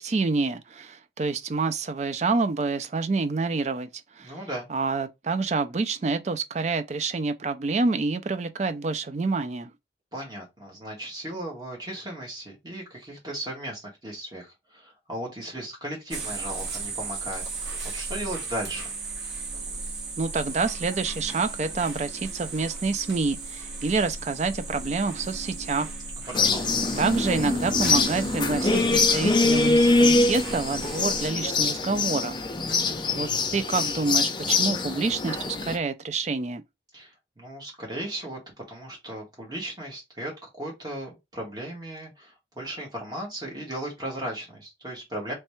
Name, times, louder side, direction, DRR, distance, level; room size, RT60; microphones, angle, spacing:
voice 1, 0.0-3.9 4.2-4.3 4.7-9.7 20.2-25.9 27.0-32.3 33.1-36.6, right 3 dB, 35° right, 0.3 m, -27 dB
voice 2, 4.2-4.7 10.1-18.9 26.3-26.7 32.7-33.0 36.9-38.4 38.7-40.3 40.6-45.3, right 1 dB, 20° right, 1.6 m, -36 dB
sound 1, 16.1-31.3, right 3 dB, 70° right, 1.2 m, -36 dB
sound 2, 26.3-35.8, left 3 dB, 25° left, 0.5 m, -24 dB
3.2 x 3.2 x 3.0 m
head